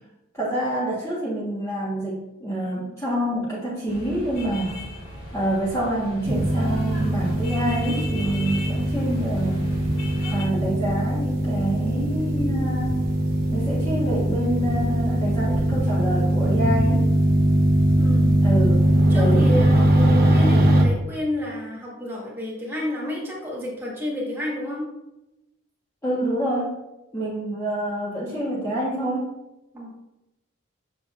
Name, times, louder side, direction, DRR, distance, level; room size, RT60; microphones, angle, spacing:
voice 1, 0.3-4.7 5.3-9.7 10.3-13.0 13.5-17.0 18.4-18.9 19.1-19.5 26.0-26.7 27.1-29.3, right 1 dB, 15° left, -7 dB, 1.4 m, -27 dB
sound 1, 3.9-10.4, left 1 dB, 50° left, 2.4 m, -37 dB
sound 2, 6.2-20.8, right 1 dB, 45° right, 1.1 m, -21 dB
voice 2, 18.0-18.3 19.1-24.8 29.7-29.9, left 1 dB, 10° right, -6 dB, 2.0 m, -30 dB
7.3 x 6.7 x 2.5 m, 0.95 s
head